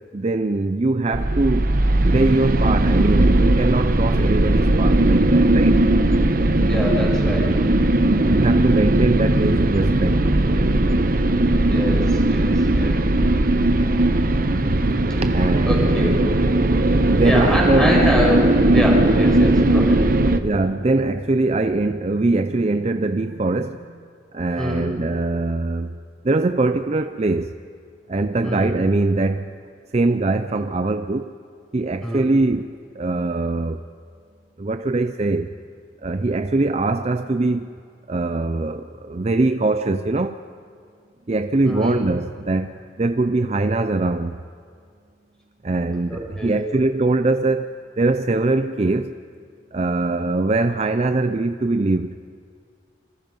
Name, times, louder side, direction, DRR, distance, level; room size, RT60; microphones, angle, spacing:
voice 1, 0.0-1.7 2.1-5.8 8.3-10.7 14.1-14.3 15.2-16.1 17.1-18.0 20.4-24.0 24.3-26.0 26.2-27.6 28.1-29.5 29.9-31.3 31.7-33.8 34.6-35.5 36.0-37.8 38.1-40.4 41.3-44.4 45.6-49.2 49.7-52.2, right 2 dB, 35° right, 0.5 m, -22 dB
sound 1, 1.1-20.4, right 1 dB, 50° right, 1.0 m, -18 dB
voice 2, 6.6-7.6 11.6-13.1 15.6-16.2 17.2-20.0 24.6-24.9 28.4-28.7 32.0-32.3 41.6-42.0 46.1-46.6, left 1 dB, 5° left, 5.8 m, -25 dB
27.0 x 26.0 x 5.4 m
head